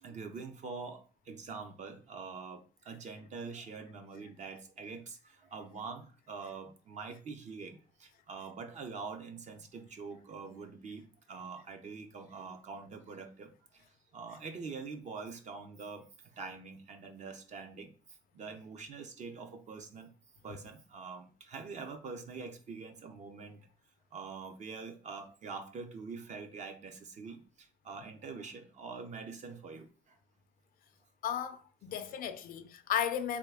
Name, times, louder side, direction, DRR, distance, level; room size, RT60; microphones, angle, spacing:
voice 1, 0.0-13.8 14.1-16.0 16.4-17.9 18.3-20.1 20.4-23.6 24.1-27.4 27.8-29.9 31.9-32.2, right 4 dB, 45° right, 0.7 m, -45 dB
voice 2, 31.2-33.4, left 9 dB, 60° left, 0.4 m, -34 dB
3.6 x 2.4 x 3.4 m
cardioid pair, 110°, 17 cm